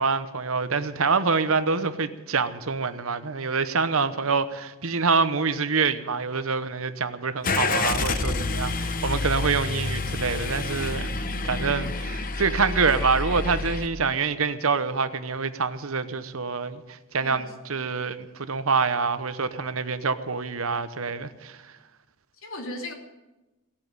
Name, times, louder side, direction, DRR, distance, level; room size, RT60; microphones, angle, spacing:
voice 1, 0.0-21.6, right 4 dB, 70° right, 0.9 m, -26 dB
Car / Engine starting, 7.4-13.9, left 3 dB, 40° left, 0.9 m, -28 dB
voice 2, 8.2-8.9 17.2-17.5 22.4-22.9, left 1 dB, 70° left, 2.9 m, -38 dB
17.0 x 8.7 x 9.5 m
head